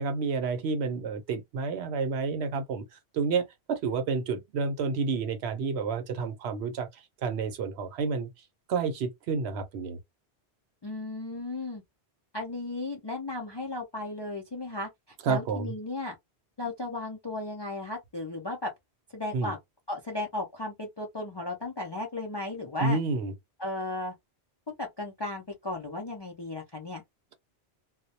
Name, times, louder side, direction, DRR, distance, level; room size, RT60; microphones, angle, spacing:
voice 1, 0.0-2.8 3.1-8.3 8.7-10.0 15.2-15.7 19.3-19.5 22.8-23.3, right 4 dB, 80° right, 0.9 m, -30 dB
voice 2, 10.8-11.8 12.3-14.9 15.3-16.1 16.6-18.7 19.1-19.6 19.9-23.0 23.6-24.1 24.7-27.0, left 2 dB, 45° left, 0.3 m, -35 dB
2.2 x 2.0 x 2.7 m
omnidirectional pair, 1.1 m